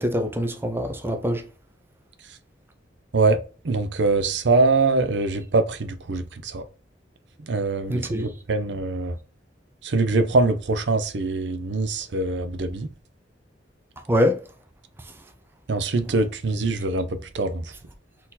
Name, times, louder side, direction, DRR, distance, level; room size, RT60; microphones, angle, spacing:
voice 1, 0.0-1.4 7.9-8.3 14.1-14.4, equal, 10° right, 0.5 m, -24 dB
voice 2, 3.6-6.6 7.5-9.2 9.8-12.9 15.7-17.7, right 3 dB, 70° right, 0.6 m, -23 dB
4.3 x 2.8 x 3.9 m
head